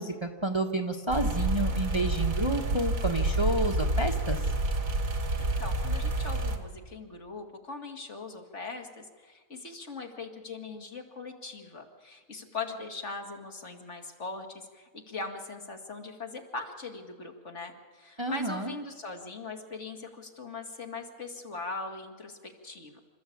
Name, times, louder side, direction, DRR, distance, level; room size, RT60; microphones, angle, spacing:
voice 1, 0.0-4.4 18.2-18.7, right 1 dB, 20° right, 4 dB, 1.2 m, -30 dB
sound 1, 1.1-6.6, right 2 dB, 75° right, 2.2 m, -28 dB
voice 2, 5.4-23.0, left 3 dB, 55° left, 4 dB, 2.4 m, -40 dB
27.5 x 14.0 x 8.6 m, 1.5 s
omnidirectional pair, 1.4 m